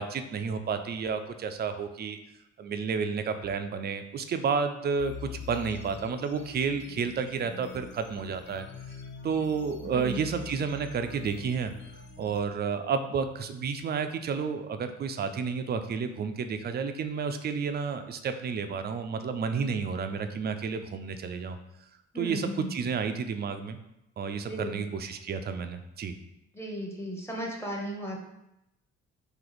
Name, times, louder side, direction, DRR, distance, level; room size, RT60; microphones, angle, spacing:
voice 1, 0.0-2.2 2.6-8.7 9.2-11.7 12.2-21.6 22.1-23.8 24.2-26.1, right 5 dB, 35° right, 8 dB, 0.4 m, -31 dB
sound 1, 5.0-12.4, left 5 dB, 40° left, 0.4 m, -45 dB
voice 2, 22.1-22.7 24.4-24.9 26.5-28.2, equal, 10° left, -1 dB, 0.8 m, -35 dB
3.0 x 2.8 x 3.9 m, 0.87 s
cardioid pair, 90°, 30 cm